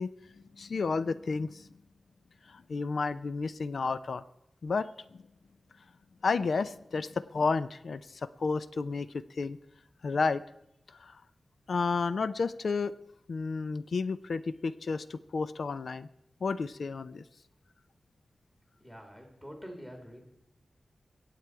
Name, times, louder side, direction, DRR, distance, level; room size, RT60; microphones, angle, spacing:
voice 1, 0.0-1.7 2.5-4.2 4.6-5.2 6.2-9.6 10.0-10.4 11.0-11.2 11.7-12.9 13.3-16.1 16.4-17.2, left 4 dB, 75° left, 14 dB, 0.5 m, -32 dB
voice 2, 18.8-20.2, equal, 15° left, 2 dB, 3.0 m, -46 dB
22.5 x 8.5 x 4.7 m, 0.81 s
wide cardioid pair, 130°, 0 cm